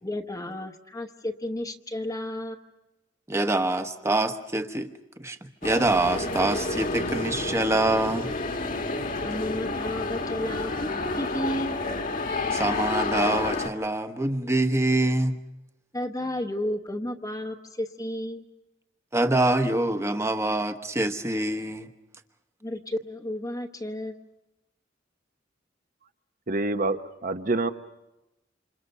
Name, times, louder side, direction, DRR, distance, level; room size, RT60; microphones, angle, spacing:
voice 1, 0.0-2.6 9.2-11.8 15.9-18.4 22.6-24.2, left 1 dB, 20° left, 3 dB, 1.0 m, -32 dB
voice 2, 3.3-8.3 12.5-15.4 19.1-21.9, right 2 dB, 15° right, 8 dB, 1.1 m, -25 dB
sound 1, 5.6-13.7, left 3 dB, 45° left, 1.4 m, -30 dB
voice 3, 26.5-27.7, right 2 dB, 45° right, 9 dB, 1.0 m, -27 dB
28.0 x 27.0 x 5.5 m, 0.96 s
head